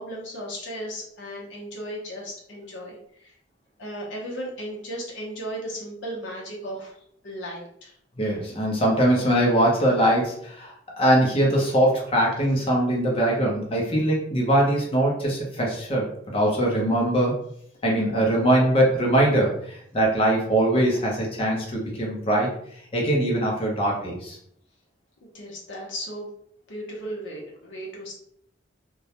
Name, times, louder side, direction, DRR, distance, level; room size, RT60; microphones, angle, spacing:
voice 1, 0.0-3.3 3.8-6.9 7.2-7.9 25.3-26.3 26.7-28.1, equal, 75° left, -2 dB, 0.6 m, -35 dB
voice 2, 8.2-16.1 16.3-17.3 17.8-22.5 22.9-24.4, right 1 dB, 30° left, -2 dB, 0.6 m, -22 dB
2.2 x 2.0 x 2.8 m, 0.68 s
head